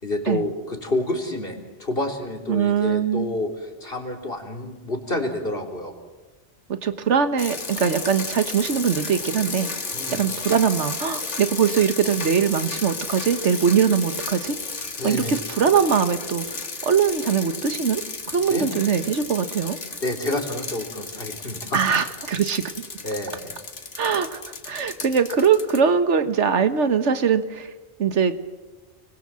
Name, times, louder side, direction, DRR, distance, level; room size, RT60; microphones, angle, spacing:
voice 1, 0.0-5.9 9.9-10.3 15.0-15.4 18.5-18.7 20.0-21.8 23.0-23.6, left 1 dB, 55° left, 3 dB, 3.7 m, -29 dB
voice 2, 2.5-3.4 6.7-9.7 10.1-14.6 15.0-18.0 18.3-19.8 21.7-22.9 24.0-27.7 28.0-28.4, right 7 dB, 85° right, 10 dB, 1.5 m, -22 dB
sound 1, 7.4-25.8, left 4 dB, 90° left, 2.4 m, -33 dB
29.5 x 21.5 x 7.6 m, 1.2 s
omnidirectional pair, 1.2 m